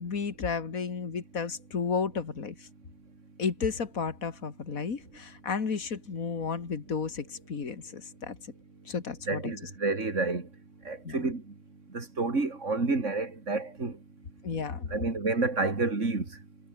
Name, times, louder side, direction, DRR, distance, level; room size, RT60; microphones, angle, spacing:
voice 1, 0.0-2.5 3.4-8.4 8.9-9.5 11.0-11.3 14.4-14.9, left 5 dB, 65° left, 2.6 m, -33 dB
voice 2, 9.3-10.5 10.9-11.4 11.9-13.9 14.9-16.3, right 3 dB, 55° right, 3.5 m, -29 dB
omnidirectional pair, 1.5 m